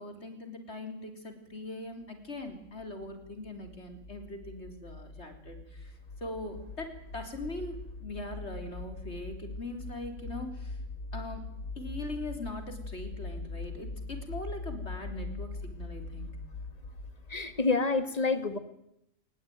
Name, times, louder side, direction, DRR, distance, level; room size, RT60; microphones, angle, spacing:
voice 1, 0.0-6.9 7.1-10.8 11.1-11.4 11.8-16.4, left 2 dB, 55° left, 6 dB, 3.9 m, -41 dB
sound 1, 2.4-17.7, left 3 dB, 75° left, 2.3 m, -42 dB
voice 2, 17.3-18.6, left 3 dB, 30° left, 11 dB, 1.9 m, -28 dB
21.5 x 20.0 x 9.4 m, 0.79 s
omnidirectional pair, 1.4 m